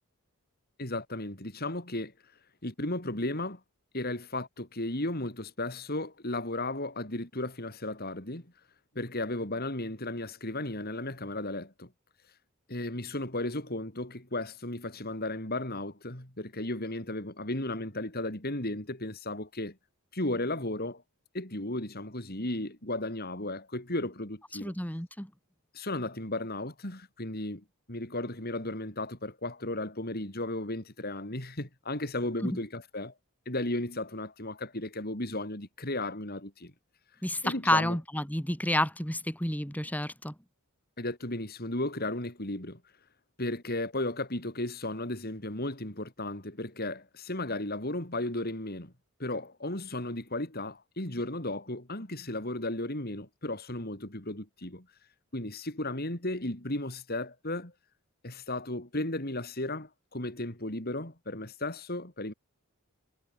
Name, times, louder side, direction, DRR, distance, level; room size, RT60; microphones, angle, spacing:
voice 1, 0.8-2.1 2.6-3.6 3.9-8.5 8.9-11.9 12.7-19.8 20.1-21.0 21.3-24.8 25.7-33.1 33.5-36.7 37.4-38.0 41.0-42.8 43.4-48.9 49.2-54.9 55.3-57.7 58.2-62.3, left 1 dB, 45° left, 4.6 m, -35 dB
voice 2, 24.6-25.3 32.4-32.6 37.2-40.3, left 1 dB, 5° left, 4.6 m, -30 dB
head